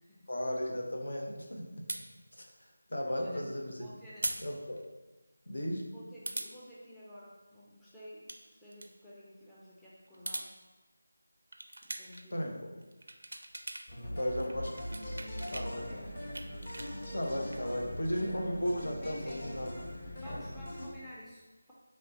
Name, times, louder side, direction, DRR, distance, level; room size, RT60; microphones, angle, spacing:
voice 1, 0.3-1.9 2.3-2.5 2.9-3.8 4.4-4.8 5.5-5.8 12.3-12.5 14.1-14.7 15.5-16.0 17.1-19.7 20.3-20.4, equal, 60° left, 1 dB, 0.7 m, -35 dB
sound 1, 1.9-2.0 4.2-4.4 4.8-4.9 6.3-6.5 8.1-8.4 8.7-8.9 10.1-10.5 11.5-12.3 12.8-13.9 14.2-15.7 16.1-17.6, right 2 dB, 60° right, 0.4 m, -40 dB
voice 2, 3.1-3.5 3.8-4.3 5.9-10.5 11.8-12.6 14.0-14.7 15.2-16.2 19.0-19.5 20.2-21.7, left 1 dB, 5° left, -9 dB, 0.5 m, -52 dB
sound 2, 13.9-20.9, equal, 35° left, 1.0 m, -41 dB
5.2 x 3.1 x 2.8 m, 1.1 s
figure-of-eight pair, 165°, 0 cm